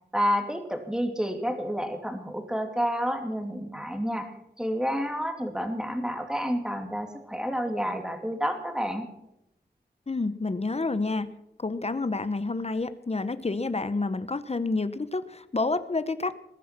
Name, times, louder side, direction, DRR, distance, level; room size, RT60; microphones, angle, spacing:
voice 1, 0.1-9.1, equal, 5° right, 5 dB, 2.7 m, -29 dB
voice 2, 10.1-11.3 11.6-16.4, left 3 dB, 40° left, 13 dB, 0.8 m, -29 dB
21.5 x 10.0 x 6.0 m, 0.84 s
wide cardioid pair, 75°, 17 cm